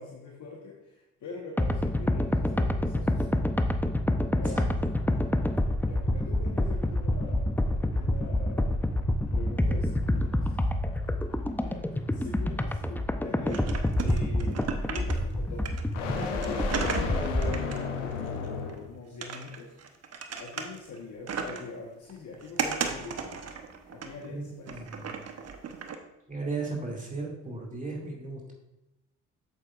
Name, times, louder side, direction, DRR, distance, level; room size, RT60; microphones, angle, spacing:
voice 1, 0.0-3.4 4.4-4.8 5.8-8.8 9.3-10.6 11.6-11.8 12.1-13.6 14.0-15.7 16.0-19.8 20.4-23.4 23.9-24.9, left 3 dB, 55° left, -2 dB, 1.4 m, -43 dB
sound 1, 1.6-17.6, left 1 dB, 5° left, 0.6 m, -27 dB
voice 2, 4.3-4.6 24.2-24.4 24.7-24.9 26.3-28.5, right 3 dB, 20° right, -2 dB, 2.4 m, -35 dB
sound 2, 4.4-18.9, left 5 dB, 90° left, 0.9 m, -38 dB
sound 3, 13.5-15.3 15.7-18.8 19.2-21.0 21.3-21.8 22.1-24.3 24.7-26.0, right 6 dB, 45° right, 1.0 m, -35 dB
8.2 x 7.5 x 2.5 m, 0.92 s
hypercardioid pair, 55°, 36 cm